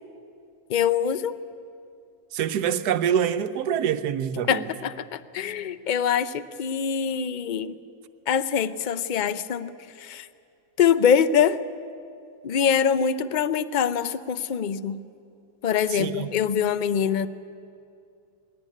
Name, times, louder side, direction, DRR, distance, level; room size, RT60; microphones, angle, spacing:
voice 1, 0.7-1.4 4.5-7.8 8.3-9.7 10.0-10.3 10.8-11.6 12.4-15.0 15.6-17.3, left 7 dB, 70° left, 0.4 m, -24 dB
voice 2, 2.3-4.6 15.9-16.3, right 9 dB, 85° right, 1.3 m, -25 dB
21.0 x 17.0 x 9.9 m
omnidirectional pair, 1.7 m